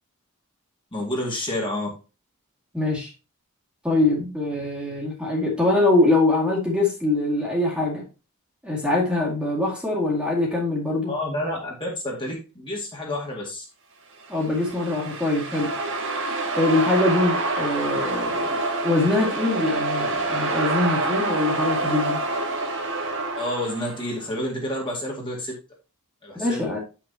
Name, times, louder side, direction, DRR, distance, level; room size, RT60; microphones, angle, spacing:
voice 1, 0.9-1.9 11.1-13.7 23.3-25.6 26.2-26.7, left 1 dB, 20° left, -2 dB, 2.1 m, -29 dB
voice 2, 2.7-3.1 3.8-8.1 8.6-11.1 14.3-15.7 16.6-22.2 26.4-26.8, left 2 dB, 5° right, -3 dB, 2.1 m, -23 dB
sound 1, 14.3-24.1, right 2 dB, 60° right, 1.6 m, -27 dB
8.4 x 6.0 x 2.9 m, 0.31 s
head